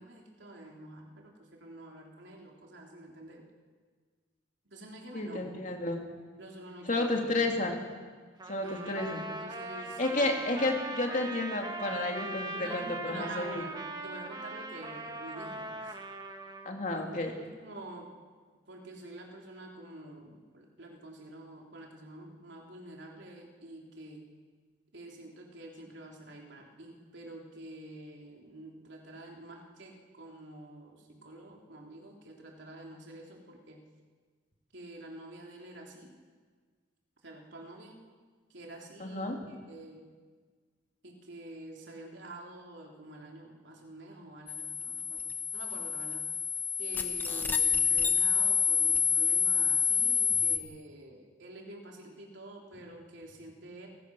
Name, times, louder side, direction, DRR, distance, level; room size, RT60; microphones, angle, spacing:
voice 1, 0.0-3.4 4.7-5.6 6.4-7.5 8.6-10.4 12.5-13.8 14.0-16.0 16.9-17.0 17.4-18.1 18.7-24.3 24.9-33.8 34.7-36.1 37.2-38.0 38.5-40.1 41.0-46.3 46.8-53.9, right 1 dB, 70° right, 0 dB, 3.5 m, -47 dB
voice 2, 5.1-6.0 6.9-7.8 8.5-9.2 10.0-13.6 16.6-17.3 39.0-39.4, left 2 dB, 40° left, 2 dB, 2.8 m, -31 dB
Trumpet, 8.4-16.7, right 2 dB, 20° right, 1.6 m, -40 dB
sound 1, 44.5-50.6, left 6 dB, 10° left, 1.1 m, -28 dB
29.0 x 15.5 x 6.3 m, 1.5 s
head